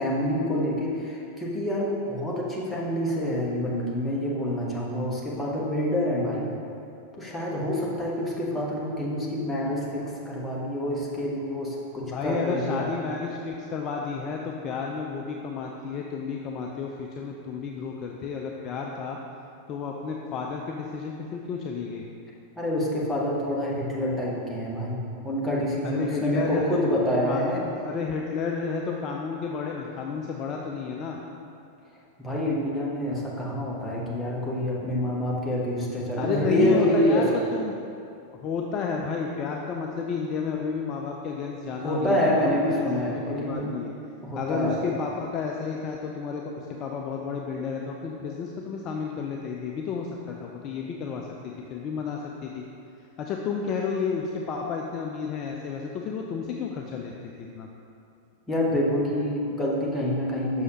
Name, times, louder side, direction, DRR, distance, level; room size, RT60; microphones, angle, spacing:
voice 1, 0.0-6.5 7.2-12.9 22.6-27.6 32.2-37.4 41.8-43.7 44.2-44.8 58.5-60.6, left 1 dB, 10° left, -5 dB, 1.2 m, -27 dB
voice 2, 12.1-19.2 19.7-22.0 25.8-26.8 27.2-31.2 36.2-37.3 37.5-37.7 38.4-43.9 44.4-52.6 53.2-57.1 57.4-57.7, left 5 dB, 35° left, 1 dB, 0.4 m, -31 dB
6.3 x 6.3 x 2.9 m, 2.6 s
figure-of-eight pair, 90°, 0 cm